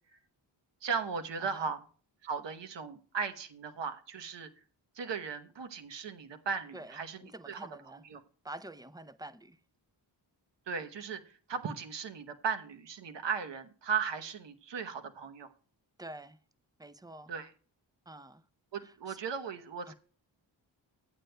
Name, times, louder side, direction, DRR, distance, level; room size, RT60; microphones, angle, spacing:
voice 1, 0.8-1.8 2.2-4.5 4.9-8.2 10.7-15.5 17.3-17.5 18.7-19.9, right 6 dB, 65° right, 1.0 m, -37 dB
voice 2, 1.4-1.7 6.7-8.0 8.4-9.6 16.0-16.4 16.8-17.3 18.1-18.4 18.8-19.2 19.9-20.0, right 1 dB, 10° right, 0.5 m, -47 dB
13.5 x 9.0 x 2.2 m
cardioid pair, 60°, 46 cm